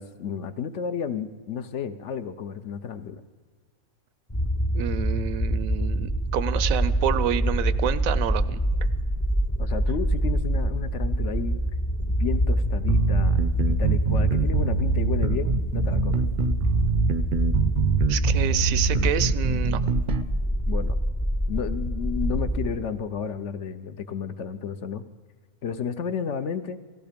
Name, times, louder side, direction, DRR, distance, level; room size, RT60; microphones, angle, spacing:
voice 1, 0.0-3.2 9.6-11.6 12.1-16.3 20.7-21.0 21.5-25.0 25.6-26.8, left 7 dB, 65° left, 10 dB, 0.9 m, -32 dB
sound 1, 4.3-22.7, right 1 dB, 25° left, 0.4 m, -25 dB
voice 2, 4.7-8.6 18.1-19.8, right 10 dB, 75° right, 15 dB, 1.0 m, -28 dB
sound 2, 12.9-20.3, right 6 dB, 55° right, 0.6 m, -25 dB
17.0 x 14.5 x 5.1 m, 1.5 s
omnidirectional pair, 1.5 m